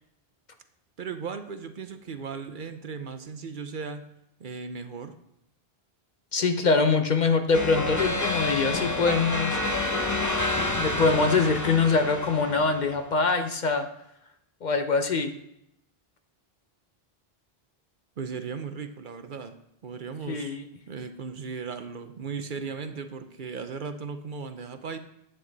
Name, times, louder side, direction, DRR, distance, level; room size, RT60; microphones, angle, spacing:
voice 1, 1.0-4.1 4.4-5.2 18.2-19.6 19.8-20.6 20.9-25.0, right 5 dB, 55° right, 8 dB, 0.8 m, -36 dB
voice 2, 6.3-9.6 10.8-13.9 14.6-15.3 20.3-20.6, left 4 dB, 50° left, 7 dB, 0.8 m, -24 dB
sound 1, 7.5-13.0, left 2 dB, 20° left, 0.8 m, -29 dB
10.0 x 7.8 x 4.0 m, 0.79 s
omnidirectional pair, 1.0 m